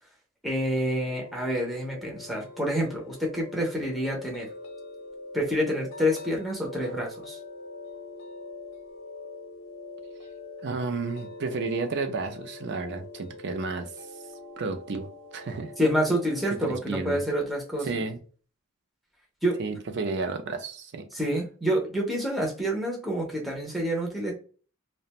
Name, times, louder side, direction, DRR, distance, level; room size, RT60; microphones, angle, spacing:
voice 1, 0.4-4.5 5.3-7.4 15.8-17.9 19.4-19.6 21.1-24.3, equal, ahead, 0.6 m, -28 dB
sound 1, 1.1-16.6, left 3 dB, 60° left, 0.6 m, -44 dB
voice 2, 10.6-13.9 14.6-15.7 16.6-17.2 17.8-18.2 19.6-21.1, right 4 dB, 50° right, 0.5 m, -32 dB
2.4 x 2.1 x 2.8 m
head